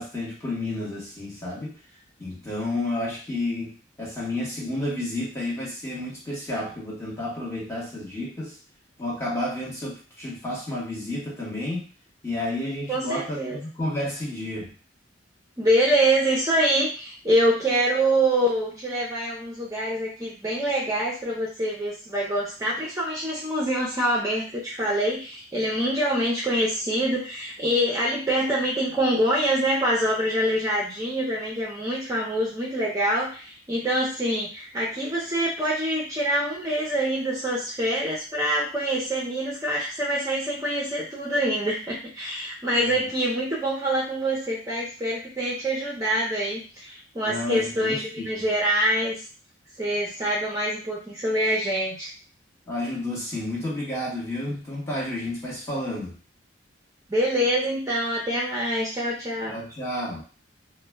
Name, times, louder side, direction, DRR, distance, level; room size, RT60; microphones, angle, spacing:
voice 1, 0.0-1.8 2.2-8.6 9.0-11.9 12.2-14.7 42.7-43.1 47.2-48.4 52.7-56.2 59.5-60.2, left 1 dB, 15° left, -5 dB, 0.8 m, -31 dB
voice 2, 12.9-13.6 15.6-49.2 49.8-52.1 57.1-59.6, right 1 dB, 15° right, -5 dB, 0.5 m, -25 dB
2.1 x 2.0 x 3.3 m, 0.37 s
head